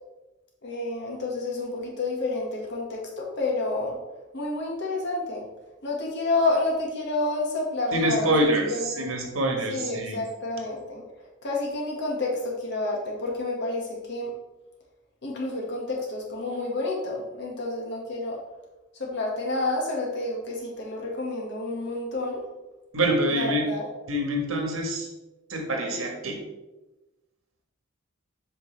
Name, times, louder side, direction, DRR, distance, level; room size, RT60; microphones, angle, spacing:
voice 1, 0.6-4.0 4.3-5.4 5.8-8.3 8.7-9.1 9.7-11.0 11.4-14.3 15.2-18.4 19.0-22.4 23.3-23.9, left 2 dB, 60° left, -2 dB, 1.8 m, -29 dB
voice 2, 7.9-10.2 22.9-23.7 24.1-25.1 25.5-26.4, right 1 dB, 85° right, 2 dB, 1.5 m, -26 dB
7.7 x 5.3 x 3.3 m, 1.1 s
head